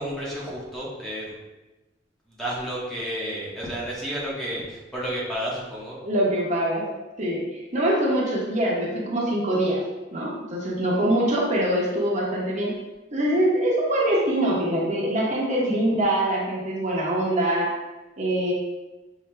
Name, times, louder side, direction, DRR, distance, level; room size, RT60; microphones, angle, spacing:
voice 1, 0.0-1.3 2.4-6.0, equal, ahead, -7 dB, 0.9 m, -31 dB
voice 2, 6.0-6.8 7.2-9.8 10.1-12.7 13.1-17.7 18.2-18.5, right 1 dB, 40° right, -4 dB, 0.9 m, -24 dB
5.8 x 2.7 x 3.2 m, 1.1 s
head